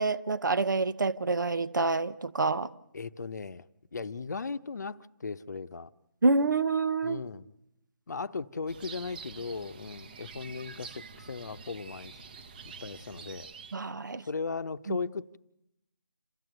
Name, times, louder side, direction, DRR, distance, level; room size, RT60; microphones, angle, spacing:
voice 1, 0.0-2.7 6.2-7.2 13.7-14.2 14.9-15.0, right 3 dB, 65° right, 1.0 m, -27 dB
voice 2, 2.9-3.7 3.9-5.9 7.0-7.5 8.1-12.1 12.6-13.5 14.2-15.4, left 4 dB, 55° left, 0.9 m, -37 dB
sound 1, 8.7-13.8, right 5 dB, 25° right, 1.0 m, -47 dB
27.5 x 14.0 x 7.9 m
figure-of-eight pair, 160°, 11 cm